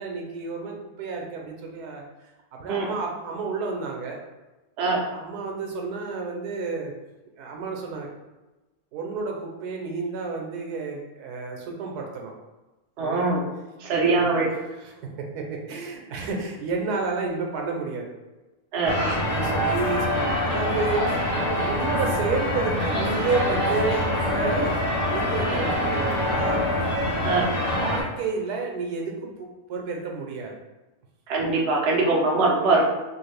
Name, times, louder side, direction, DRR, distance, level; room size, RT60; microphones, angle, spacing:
voice 1, 0.0-2.0 2.5-4.2 5.1-6.9 7.3-8.1 8.9-12.3 13.0-13.2 13.9-18.1 19.0-21.1 21.4-24.1 24.3-24.8 25.1-26.7 27.4-27.5 27.8-30.6, right 4 dB, 90° right, 1 dB, 1.2 m, -31 dB
voice 2, 13.0-13.4 13.8-14.5 18.7-19.0 27.2-27.5 31.3-32.8, right 3 dB, 55° right, -2 dB, 0.8 m, -22 dB
sound 1, 18.8-28.0, left 1 dB, 30° left, 0.6 m, -25 dB
3.2 x 2.5 x 3.2 m, 1.1 s
omnidirectional pair, 1.6 m